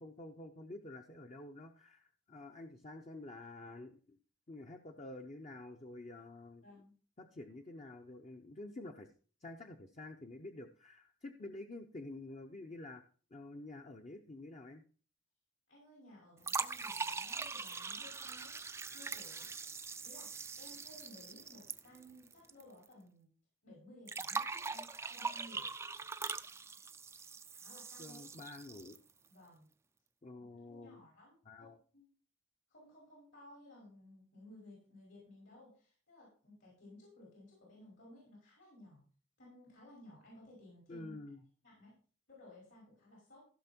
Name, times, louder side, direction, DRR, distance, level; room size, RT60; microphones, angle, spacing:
voice 1, 0.0-4.2 4.5-6.6 7.2-9.1 9.4-13.0 13.3-14.8 28.0-29.0 30.2-31.0 31.4-31.8 40.9-41.4, left 2 dB, 35° left, 4 dB, 0.8 m, -49 dB
voice 2, 6.6-6.9 15.7-18.5 18.9-19.4 20.0-23.3 23.6-25.7 27.5-28.3 29.3-29.7 30.6-32.1 32.7-39.0 39.4-41.1 41.6-41.9 42.3-43.5, left 1 dB, 70° left, -4 dB, 5.6 m, -58 dB
sound 1, 16.4-22.6 22.9-23.0 24.1-29.1, right 4 dB, 15° right, 0.4 m, -42 dB
15.5 x 6.0 x 4.4 m, 0.41 s
head